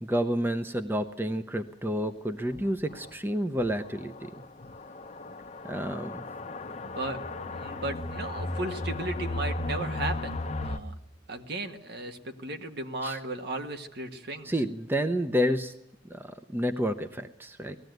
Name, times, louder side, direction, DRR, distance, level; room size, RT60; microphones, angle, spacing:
voice 1, 0.0-4.1 5.7-6.2 13.0-13.2 14.4-15.7 16.1-17.8, equal, 10° right, 9 dB, 0.8 m, -29 dB
sound 1, 2.6-2.7 3.0-3.1 3.6-3.7 4.6-10.8, left 2 dB, 35° left, 0.8 m, -35 dB
voice 2, 6.8-10.9 11.3-14.5, right 2 dB, 60° right, 6 dB, 1.6 m, -36 dB
19.5 x 14.5 x 9.3 m, 0.87 s
head